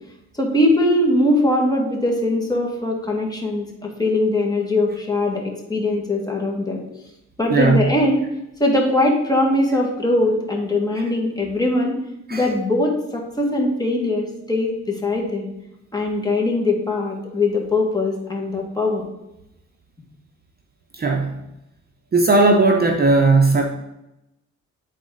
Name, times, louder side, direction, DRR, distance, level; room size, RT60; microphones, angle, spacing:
voice 1, 0.3-6.8 7.4-8.2 8.6-12.0 12.3-15.5 15.9-19.0, left 1 dB, 15° left, -1 dB, 1.8 m, -21 dB
voice 2, 7.5-7.9 11.0-11.1 12.3-12.5 20.9-21.4 22.1-23.6, right 3 dB, 30° right, 3 dB, 0.8 m, -17 dB
9.2 x 4.1 x 3.9 m, 0.89 s
cardioid pair, 90°, 30 cm